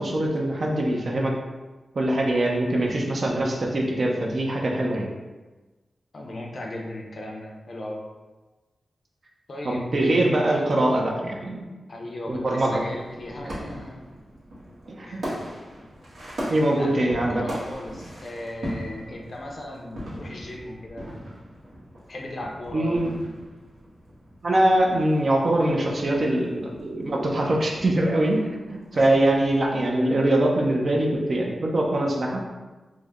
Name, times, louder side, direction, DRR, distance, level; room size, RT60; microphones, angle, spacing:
voice 1, 0.0-1.3 1.9-5.1 9.6-11.6 12.3-12.8 13.4-13.6 14.9-15.4 16.5-17.4 22.7-23.2 24.4-32.4, right 1 dB, 45° right, -1 dB, 0.6 m, -23 dB
voice 2, 6.1-8.1 9.5-9.9 10.7-11.1 11.9-14.0 15.0-15.3 16.7-21.2 22.1-23.0 28.9-29.3, left 1 dB, 50° left, 0 dB, 0.5 m, -37 dB
sound 1, 12.5-29.9, equal, 75° right, 1.1 m, -40 dB
3.3 x 2.1 x 3.5 m, 1.2 s
wide cardioid pair, 110°, 0 cm